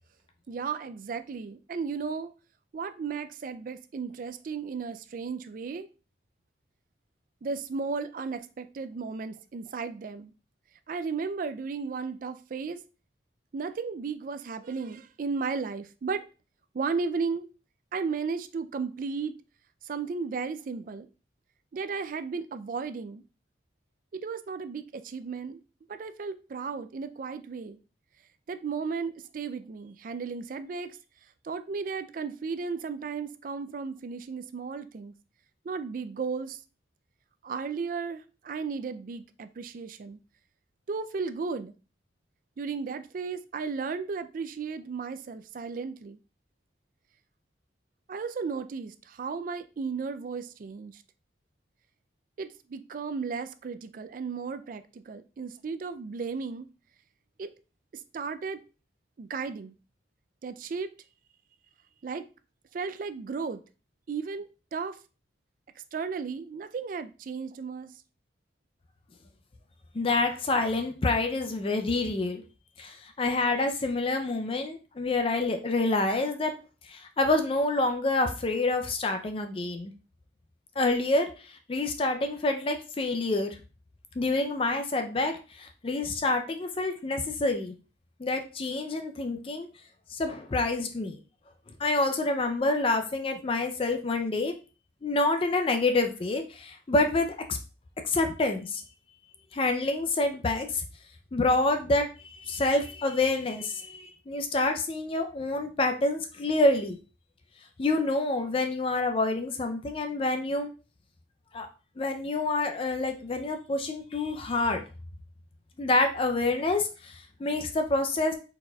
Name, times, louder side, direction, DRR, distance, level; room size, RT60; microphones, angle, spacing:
voice 1, 0.5-2.3 2.7-5.9 7.4-10.3 10.9-12.8 13.5-16.2 16.7-17.5 17.9-19.3 19.8-21.1 21.7-23.2 24.1-25.6 25.9-27.8 28.5-31.0 31.4-35.1 35.6-36.6 37.4-40.2 40.9-41.7 42.6-46.2 48.1-51.0 52.4-56.7 57.4-57.5 57.9-58.6 59.2-59.7 60.4-60.9 62.0-62.3 62.7-63.6 64.1-65.0 65.9-67.9, right 5 dB, 45° right, 0.3 m, -34 dB
voice 2, 69.9-72.4 72.8-76.5 76.9-79.9 80.8-83.6 84.2-87.7 88.2-89.7 90.1-91.2 91.8-94.6 95.0-97.6 98.0-98.8 99.5-100.8 101.3-107.0 107.8-110.7 111.5-111.7 112.0-114.8 115.8-118.3, left 2 dB, 30° left, 0.4 m, -27 dB
4.4 x 4.1 x 2.2 m
head